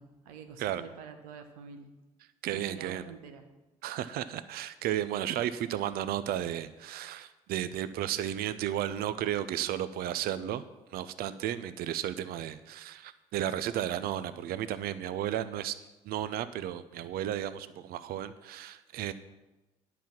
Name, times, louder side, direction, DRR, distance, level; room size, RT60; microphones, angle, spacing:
voice 1, 0.0-1.9 2.5-3.4, right 6 dB, 75° right, 7 dB, 1.1 m, -47 dB
voice 2, 2.4-3.0 3.8-10.6 10.9-15.8 16.1-19.1, right 11 dB, 55° right, 14 dB, 0.5 m, -33 dB
10.5 x 6.0 x 7.3 m, 1.1 s
hypercardioid pair, 50°, 18 cm